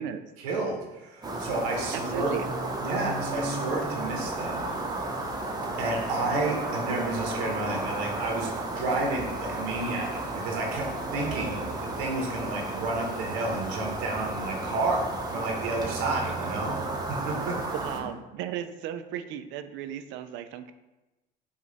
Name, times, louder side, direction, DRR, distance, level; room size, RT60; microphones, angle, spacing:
voice 1, 0.4-2.3 2.8-4.6 5.8-16.8 17.1-17.6, right 3 dB, 85° right, 0 dB, 0.9 m, -31 dB
sound 1, 1.2-18.0, right 2 dB, 20° right, 0.8 m, -33 dB
voice 2, 1.9-2.5 17.7-20.7, right 9 dB, 65° right, 10 dB, 0.4 m, -35 dB
5.0 x 2.4 x 3.9 m, 1.0 s
supercardioid pair, 85°, 20 cm